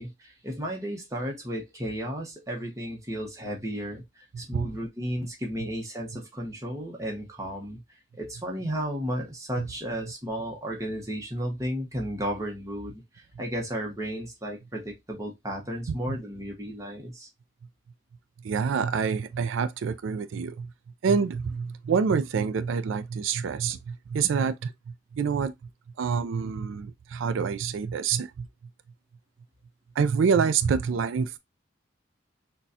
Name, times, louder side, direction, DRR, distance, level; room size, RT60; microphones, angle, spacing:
voice 1, 0.0-7.8 8.2-17.3, equal, 15° right, 0.9 m, -34 dB
voice 2, 4.3-4.7 9.6-9.7 15.9-16.2 18.4-20.7 21.0-24.7 25.1-25.5 26.0-28.5 30.0-31.4, right 6 dB, 90° right, 0.4 m, -27 dB
6.1 x 2.3 x 2.7 m
head